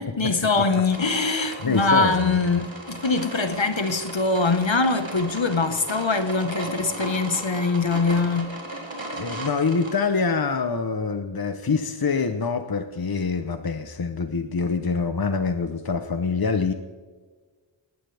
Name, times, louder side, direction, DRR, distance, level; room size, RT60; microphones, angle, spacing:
voice 1, 0.0-8.5, left 3 dB, 65° left, 1.6 m, -23 dB
sound 1, 0.9-10.0, right 1 dB, 65° right, 4.1 m, -36 dB
voice 2, 1.4-2.4 9.1-16.7, left 4 dB, 45° left, 1.0 m, -25 dB
19.5 x 16.0 x 3.5 m
wide cardioid pair, 40°, 48 cm